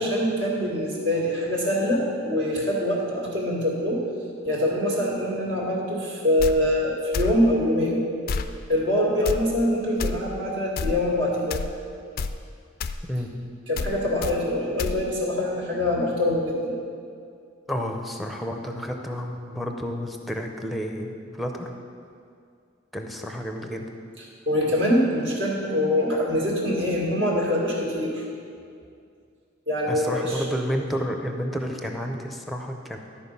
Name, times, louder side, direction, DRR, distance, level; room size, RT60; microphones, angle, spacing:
voice 1, 0.0-4.0 4.4-8.0 8.7-11.6 13.7-16.8 24.5-28.2 29.7-30.4, left 1 dB, 60° right, -4 dB, 2.0 m, -24 dB
sound 1, 6.4-6.5 7.1-7.4 8.3-8.5 9.2-9.4 10.0-10.1 10.8-11.0 11.5-11.7 12.2-12.3 12.8-13.0 13.8-13.9 14.2-14.3 14.8-15.0, left 4 dB, 50° left, 0.3 m, -28 dB
voice 2, 17.7-21.7 22.9-23.9 29.9-33.0, equal, ahead, 3 dB, 0.6 m, -30 dB
12.0 x 4.5 x 5.4 m, 2.3 s
head